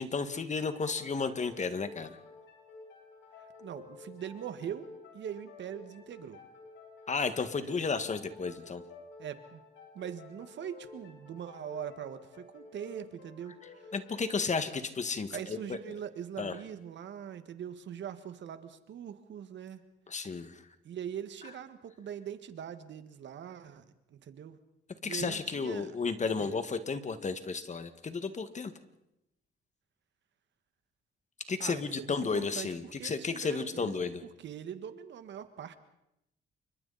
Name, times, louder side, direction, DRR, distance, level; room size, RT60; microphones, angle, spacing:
voice 1, 0.0-2.2 7.1-8.8 13.9-15.6 15.9-16.0 16.4-16.6 20.1-20.6 25.0-28.7 31.5-34.2, left 4 dB, 35° left, 10 dB, 2.0 m, -33 dB
sound 1, 0.5-15.9, left 3 dB, 80° left, 7.6 m, -52 dB
voice 2, 3.6-4.9 5.1-6.4 7.7-7.9 9.2-9.6 9.9-13.9 15.3-19.8 20.8-24.6 25.0-25.9 26.4-26.5 31.6-34.0 34.4-35.7, right 9 dB, 65° right, 10 dB, 1.8 m, -42 dB
28.5 x 24.5 x 4.3 m, 0.84 s
cardioid pair, 90°, 20 cm